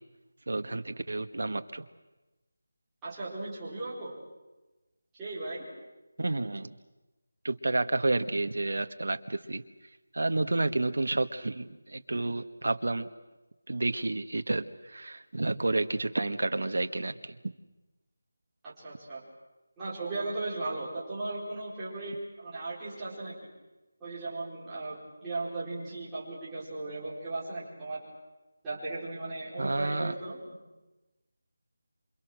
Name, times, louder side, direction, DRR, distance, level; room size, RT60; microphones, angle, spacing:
voice 1, 0.5-1.8 6.2-6.7 7.4-9.6 10.1-13.1 13.7-17.3 29.6-30.1, right 2 dB, 65° right, 8 dB, 1.5 m, -30 dB
voice 2, 3.0-4.2 5.2-5.6 18.6-19.2 19.8-23.3 24.0-28.0 28.6-30.4, right 2 dB, 5° right, -13 dB, 4.9 m, -37 dB
28.0 x 26.0 x 6.4 m, 1.1 s
figure-of-eight pair, 180°, 0 cm